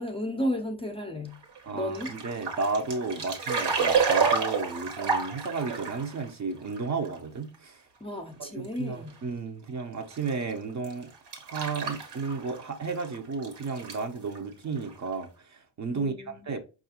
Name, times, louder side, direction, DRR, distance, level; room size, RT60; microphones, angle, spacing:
voice 1, 0.0-1.4 1.7-2.1 8.0-9.2 15.9-16.5, equal, 15° left, 0.5 m, -33 dB
sound 1, 1.4-6.2 6.8-6.9 7.0-7.1 7.5-7.6 8.6-8.7 10.1-10.3 10.8-12.6 12.9-14.0 14.4-14.5 14.7-14.9 15.2-15.3, right 5 dB, 65° right, 1.1 m, -29 dB
voice 2, 1.7-7.8 8.5-11.1 11.4-16.1 16.5-16.6, right 4 dB, 40° right, 0.6 m, -33 dB
4.5 x 2.4 x 2.8 m
cardioid pair, 80°, 44 cm